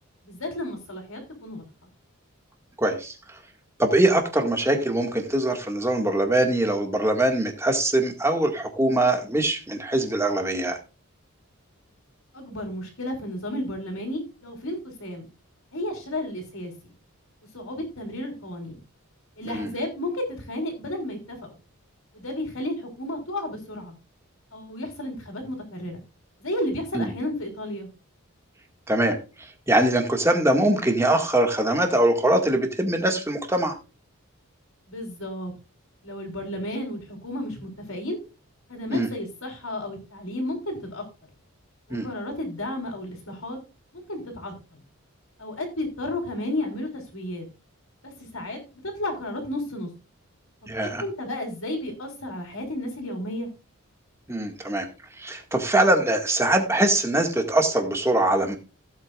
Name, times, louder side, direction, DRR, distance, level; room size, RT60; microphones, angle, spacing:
voice 1, 0.2-1.6 12.3-15.3 15.7-16.7 17.5-18.8 19.4-21.5 22.1-23.9 24.5-26.0 26.4-27.9 34.9-35.5 36.0-38.2 38.7-41.0 41.9-43.6 43.9-44.8 45.4-47.4 48.0-48.6 49.0-49.9 50.8-53.5, left 1 dB, 70° left, 2 dB, 3.8 m, -32 dB
voice 2, 2.8-3.4 3.8-10.8 19.5-19.7 26.9-27.1 28.9-33.8 38.9-39.1 41.9-42.1 50.7-51.0 54.3-54.9 55.2-58.6, right 1 dB, 10° right, 4 dB, 1.9 m, -23 dB
16.0 x 8.8 x 2.4 m, 0.30 s
head